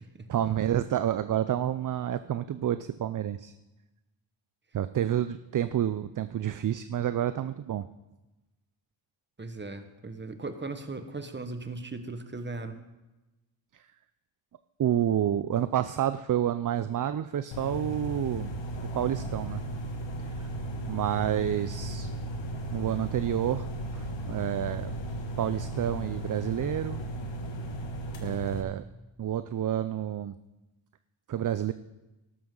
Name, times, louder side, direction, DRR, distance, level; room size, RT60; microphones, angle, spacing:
voice 1, 0.3-3.5 4.7-7.9 14.8-18.5 18.9-19.6 20.3-20.4 20.9-22.1 22.7-23.7 23.9-25.0 25.4-27.0 28.2-28.8 29.2-30.3 31.3-31.7, right 10 dB, 45° right, 12 dB, 0.5 m, -29 dB
voice 2, 9.4-12.8, right 3 dB, 20° right, 8 dB, 1.4 m, -38 dB
sound 1, 17.5-28.6, right 1 dB, 65° left, 1.6 m, -35 dB
12.5 x 12.0 x 3.9 m, 1.0 s
cardioid pair, 55°, 48 cm